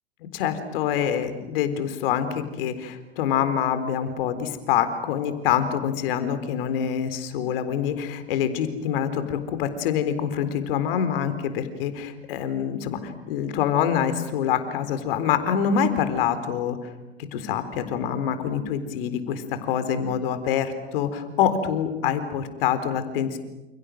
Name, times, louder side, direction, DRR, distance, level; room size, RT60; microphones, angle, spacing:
voice 1, 0.3-16.9 17.3-23.4, left 8 dB, 60° left, 10 dB, 4.0 m, -26 dB
29.5 x 29.0 x 6.4 m, 1.0 s
hypercardioid pair, 90°, 32 cm